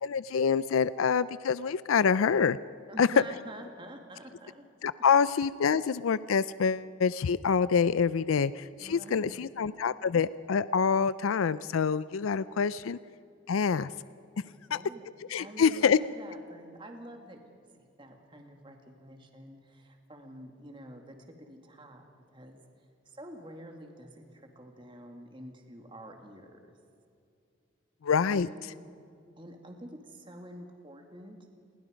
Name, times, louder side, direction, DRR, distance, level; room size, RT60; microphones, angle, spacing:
voice 1, 0.0-2.6 3.0-3.1 4.8-13.0 13.5-13.9 14.7-14.8 15.3-16.0 28.0-28.5, left 6 dB, 85° left, 17 dB, 0.4 m, -26 dB
voice 2, 2.9-4.6 8.8-9.5 14.4-15.1 15.4-17.5 17.8-21.2 21.5-22.0 22.3-22.6 23.1-26.8 28.2-29.0 29.4-31.4, right 1 dB, 25° right, 3 dB, 2.2 m, -48 dB
28.0 x 22.0 x 5.2 m, 2.5 s
head